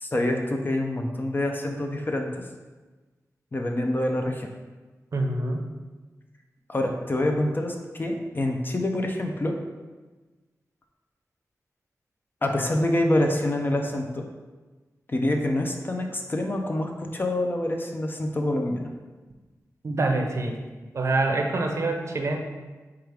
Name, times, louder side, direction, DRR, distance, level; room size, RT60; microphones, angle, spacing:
voice 1, 0.0-2.4 3.5-4.5 6.7-9.5 12.4-14.2 15.1-18.9, left 1 dB, 35° left, 3 dB, 0.5 m, -26 dB
voice 2, 5.1-5.7 19.8-20.6 20.9-22.4, right 2 dB, 50° right, 2 dB, 0.5 m, -25 dB
4.6 x 2.4 x 4.7 m, 1.3 s
wide cardioid pair, 90°, 6 cm